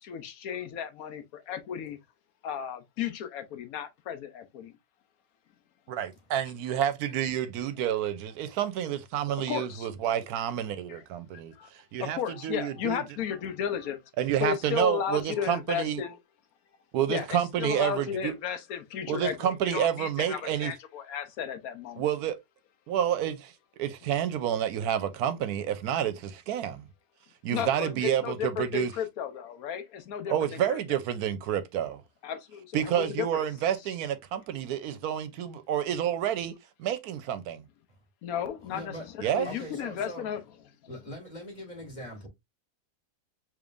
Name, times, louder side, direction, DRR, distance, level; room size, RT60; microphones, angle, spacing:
voice 1, 0.0-2.0 2.4-4.7 9.4-9.9 10.9-11.0 11.6-11.7 12.0-14.0 14.4-16.2 17.1-22.0 27.5-30.8 32.2-33.4 38.2-40.4, left 8 dB, 65° left, 1.1 m, -34 dB
voice 2, 5.9-11.5 11.9-13.0 14.2-16.0 16.9-18.3 19.1-20.7 22.0-22.4 22.9-23.5 23.8-26.8 27.4-28.9 30.3-32.0 32.7-36.5 36.8-37.6 39.2-39.5, right 10 dB, 75° right, 1.1 m, -29 dB
voice 3, 38.7-39.1 39.4-40.3 40.9-42.3, equal, 25° left, 1.9 m, -41 dB
5.0 x 3.1 x 2.4 m
omnidirectional pair, 1.7 m